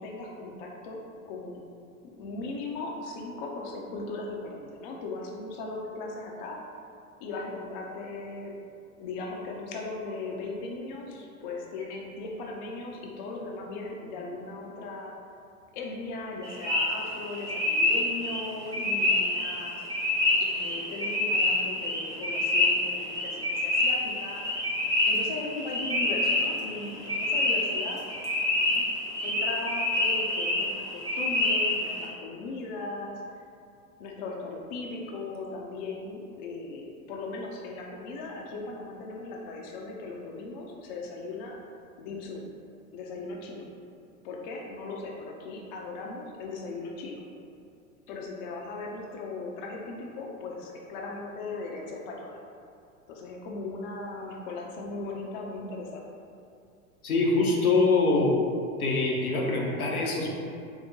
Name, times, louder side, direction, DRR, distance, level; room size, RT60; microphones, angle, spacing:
voice 1, 0.0-1.6 2.2-6.6 7.2-8.5 9.0-15.1 15.7-19.8 20.4-24.4 25.1-28.0 29.2-33.2 34.0-41.6 42.0-42.5 42.9-43.7 44.2-47.2 48.1-52.4 53.1-56.0, left 3 dB, 35° left, -1 dB, 0.4 m, -38 dB
sound 1, 16.4-32.1, left 2 dB, 10° right, 0.6 m, -27 dB
voice 2, 57.0-58.4 58.8-60.3, left 3 dB, 80° left, -2 dB, 0.7 m, -24 dB
4.5 x 2.0 x 2.7 m, 2.4 s
figure-of-eight pair, 85°, 43 cm